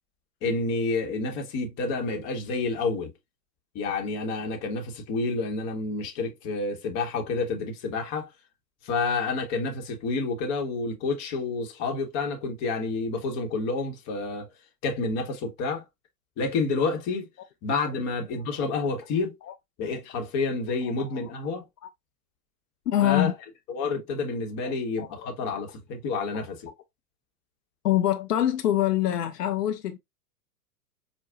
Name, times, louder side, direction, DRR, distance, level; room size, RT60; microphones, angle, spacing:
voice 1, 0.4-3.1 3.7-8.3 8.8-14.5 14.8-15.8 16.4-17.3 17.6-19.3 19.8-21.6 23.0-23.3 23.7-26.7, left 3 dB, 35° left, 1.1 m, -29 dB
voice 2, 20.8-21.3 22.9-23.3 24.6-25.3 26.3-26.4 27.8-30.0, left 12 dB, 75° left, 0.6 m, -25 dB
4.8 x 2.3 x 2.2 m
hypercardioid pair, 110°, 48 cm